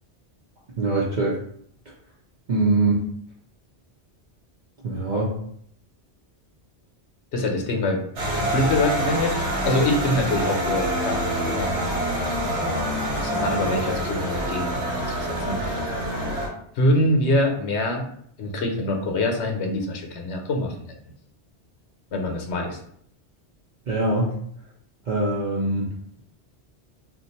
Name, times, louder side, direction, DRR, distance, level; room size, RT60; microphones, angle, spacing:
voice 1, 0.8-1.4 2.5-3.0 4.8-5.3 23.9-24.3 25.1-25.9, right 2 dB, 50° right, -4 dB, 0.7 m, -22 dB
voice 2, 7.3-8.0 8.3-11.9 12.4-12.8 13.1-16.1 16.7-18.0 18.4-20.8 22.1-22.8, left 1 dB, 80° left, 3 dB, 0.9 m, -25 dB
sound 1, 8.2-16.5, right 1 dB, 85° right, 1.3 m, -26 dB
2.5 x 2.2 x 4.0 m, 0.66 s
omnidirectional pair, 1.1 m